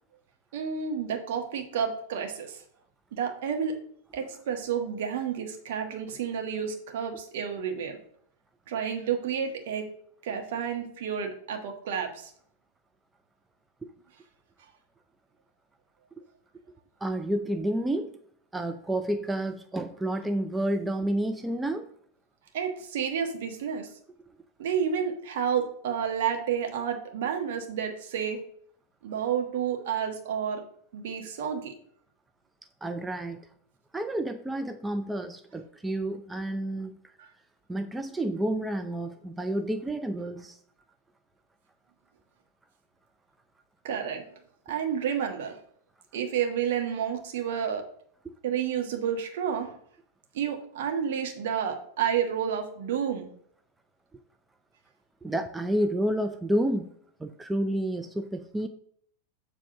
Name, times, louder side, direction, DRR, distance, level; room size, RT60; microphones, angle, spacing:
voice 1, 0.5-2.6 3.1-3.7 4.1-8.0 8.7-9.8 10.2-12.3 22.5-23.9 24.6-28.4 29.0-30.6 30.9-31.7 43.8-44.2 44.7-45.6 46.1-47.8 48.4-49.7 50.3-53.3, right 8 dB, 55° right, 4 dB, 1.3 m, -30 dB
voice 2, 17.0-18.1 18.5-21.9 32.8-33.4 33.9-37.0 37.7-40.6 55.2-56.9 57.2-58.7, right 1 dB, 10° right, 7 dB, 0.4 m, -30 dB
7.4 x 3.5 x 5.8 m, 0.64 s
figure-of-eight pair, 90°, 0 cm